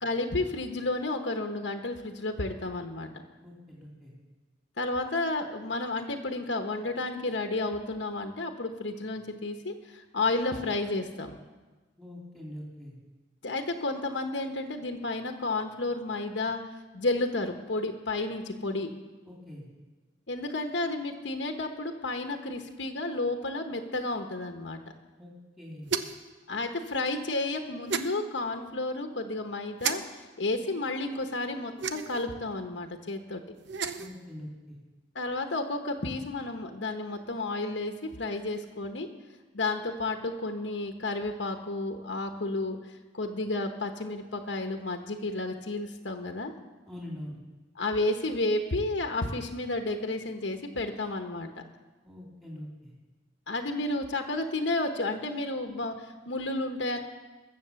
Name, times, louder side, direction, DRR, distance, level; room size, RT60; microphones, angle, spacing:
voice 1, 0.0-3.1 4.8-11.4 13.4-16.6 16.9-18.9 20.3-24.8 26.5-33.4 35.1-39.1 39.5-46.5 47.8-51.6 53.5-57.0, left 2 dB, 70° left, 5 dB, 1.1 m, -32 dB
voice 2, 3.4-4.1 12.0-13.0 19.2-19.7 25.2-25.3 25.6-25.9 34.0-34.8 46.9-47.4 52.0-52.9, left 1 dB, 10° right, -4 dB, 2.8 m, -43 dB
sound 1, 25.9-26.3 27.9-28.1 29.8-30.0 31.8-32.3 33.6-34.1, right 7 dB, 70° right, 0.8 m, -31 dB
21.5 x 7.5 x 7.0 m, 1.3 s
head